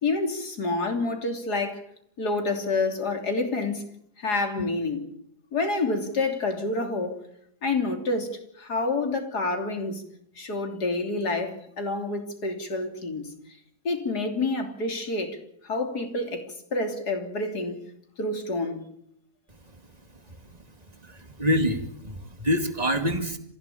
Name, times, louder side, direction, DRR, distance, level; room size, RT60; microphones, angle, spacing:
voice 1, 0.0-1.8 2.2-3.9 4.2-5.1 5.5-7.2 7.6-10.0 10.4-13.3 13.8-15.4 15.6-17.8 18.2-18.8, left 3 dB, 70° left, 3.8 m, -28 dB
voice 2, 21.0-23.4, equal, 25° right, 2.5 m, -26 dB
27.0 x 16.0 x 8.7 m
omnidirectional pair, 1.8 m